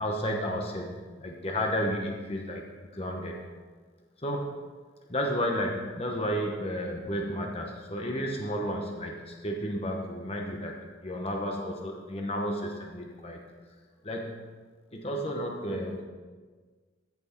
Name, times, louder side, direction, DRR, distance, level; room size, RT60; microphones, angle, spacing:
voice 1, 0.0-3.5 4.2-4.6 5.1-13.4 14.0-14.3 14.9-16.0, equal, 30° left, 1 dB, 0.9 m, -32 dB
14.0 x 6.0 x 4.4 m, 1.4 s
head